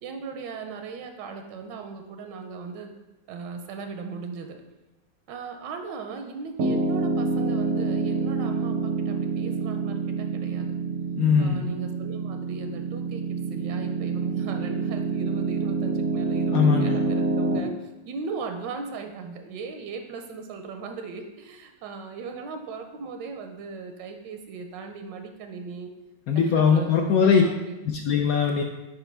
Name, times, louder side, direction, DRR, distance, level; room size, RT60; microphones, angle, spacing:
voice 1, 0.0-2.9 3.3-4.6 5.3-10.7 11.4-17.7 18.0-25.9 26.3-27.9, right 5 dB, 85° right, 5 dB, 1.3 m, -38 dB
Piano, 6.6-17.6, right 4 dB, 70° right, 0.8 m, -27 dB
voice 2, 11.2-11.7 16.5-17.0 26.3-27.4 27.8-28.6, left 6 dB, 75° left, 3 dB, 0.8 m, -21 dB
6.0 x 4.8 x 3.3 m, 1.1 s
omnidirectional pair, 1.9 m